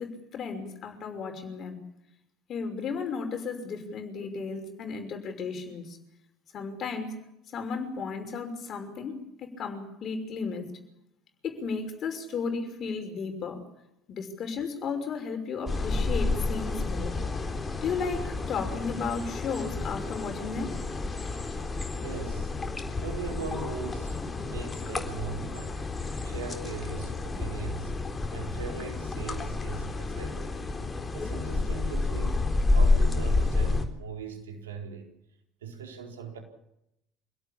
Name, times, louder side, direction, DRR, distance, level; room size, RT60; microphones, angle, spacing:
voice 1, 0.0-1.8 2.5-6.0 6.5-7.1 7.5-10.7 11.4-13.6 14.1-17.2 17.8-20.8, left 5 dB, 45° left, 5 dB, 5.8 m, -34 dB
Swimming in a natural pool in the woods, 15.7-33.8, left 3 dB, 20° left, 4.0 m, -30 dB
voice 2, 22.0-22.5 23.0-25.8 26.2-28.0 28.3-30.6 31.1-32.4 32.7-35.1 35.6-36.4, right 5 dB, 75° right, 3 dB, 4.4 m, -39 dB
26.5 x 17.0 x 8.7 m, 0.83 s
figure-of-eight pair, 60°, 0 cm